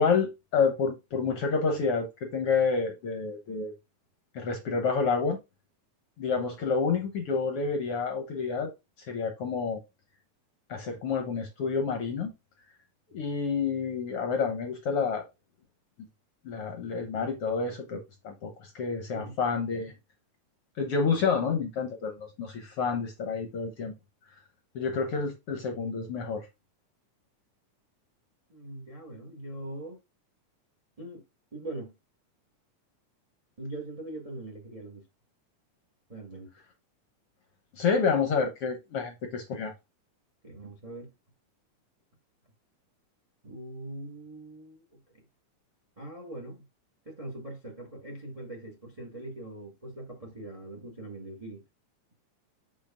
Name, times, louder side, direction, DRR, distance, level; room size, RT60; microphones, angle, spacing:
voice 1, 0.0-3.7 4.3-5.4 6.2-8.7 9.0-9.8 10.7-12.3 13.1-15.2 16.4-19.9 20.8-23.9 24.7-26.5 37.7-39.7, left 5 dB, 65° left, 1.5 m, -29 dB
voice 2, 28.5-30.0 31.0-31.2 31.5-31.9 33.6-35.0 36.1-36.5 38.1-38.3 40.4-41.1 43.4-45.2 46.0-46.7 47.0-51.6, right 2 dB, 35° right, 0.6 m, -42 dB
6.4 x 6.3 x 2.4 m
omnidirectional pair, 3.7 m